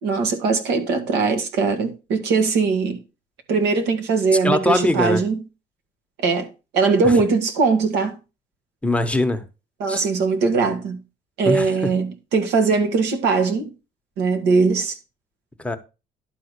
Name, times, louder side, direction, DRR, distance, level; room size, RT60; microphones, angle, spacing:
voice 1, 0.0-3.0 3.5-5.4 6.2-6.5 6.7-8.1 9.8-11.0 11.4-13.7 14.2-15.0, right 4 dB, 90° right, 2.0 m, -20 dB
voice 2, 4.4-5.2 7.0-7.1 8.8-9.4 9.9-10.1 11.4-11.9 15.6-15.8, left 1 dB, 5° left, 1.0 m, -21 dB
11.5 x 3.8 x 6.6 m
cardioid pair, 110°, 17 cm